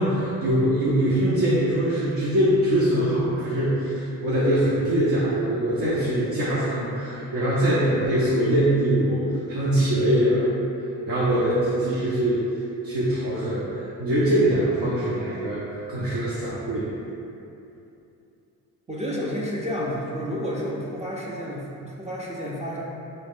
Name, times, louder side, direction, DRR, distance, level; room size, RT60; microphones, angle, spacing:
voice 1, 0.0-10.5 11.1-12.4 12.8-16.9, right 1 dB, 55° right, -8 dB, 0.8 m, -23 dB
voice 2, 18.9-22.8, equal, 15° right, -5 dB, 0.5 m, -30 dB
3.0 x 2.9 x 3.6 m, 2.8 s
supercardioid pair, 55°, 40 cm